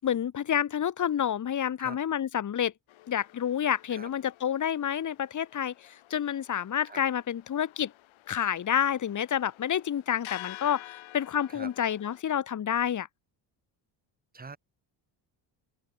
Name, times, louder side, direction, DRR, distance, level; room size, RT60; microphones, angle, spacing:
voice 1, 0.0-2.7 3.1-7.9 8.3-13.1, left 9 dB, 40° left, 2.6 m, -29 dB
voice 2, 1.8-2.0 3.9-4.1 6.9-7.0 11.5-11.7 14.3-14.6, right 4 dB, 20° right, 7.1 m, -43 dB
sound 1, 2.9-12.2, left 17 dB, 90° left, 7.0 m, -50 dB
open air
cardioid pair, 155°, 46 cm